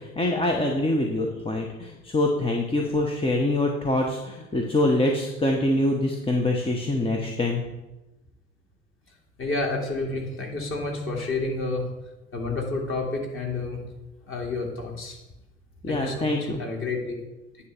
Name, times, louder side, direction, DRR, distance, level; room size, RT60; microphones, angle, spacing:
voice 1, 0.0-7.6 15.8-16.6, left 1 dB, 15° left, 1 dB, 1.0 m, -25 dB
voice 2, 9.4-11.9 12.3-13.8 14.3-15.2 15.9-17.2, left 3 dB, 35° left, -1 dB, 2.4 m, -30 dB
9.6 x 3.3 x 6.8 m, 1.0 s
figure-of-eight pair, 65°, 37 cm